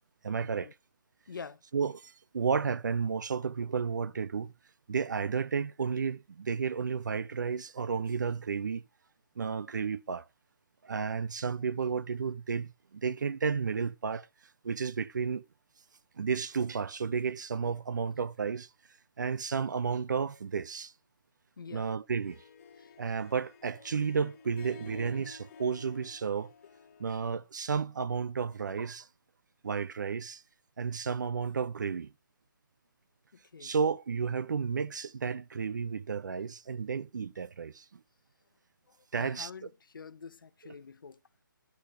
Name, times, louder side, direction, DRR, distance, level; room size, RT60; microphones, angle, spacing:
voice 1, 0.2-0.7 1.7-4.5 4.9-8.8 9.4-10.3 10.8-14.3 14.6-15.4 16.2-18.7 19.2-20.9 21.7-22.4 23.0-26.5 27.0-29.1 29.6-30.4 30.8-32.1 33.6-38.0 39.1-39.5, right 6 dB, 60° right, 0.6 m, -32 dB
voice 2, 1.3-1.6 21.6-21.9 22.8-22.9 33.3-33.7 38.9-41.2, left 5 dB, 75° left, 0.6 m, -46 dB
Harp, 22.1-27.4, left 5 dB, 40° left, 1.7 m, -52 dB
11.5 x 10.5 x 2.4 m
hypercardioid pair, 170°, 11 cm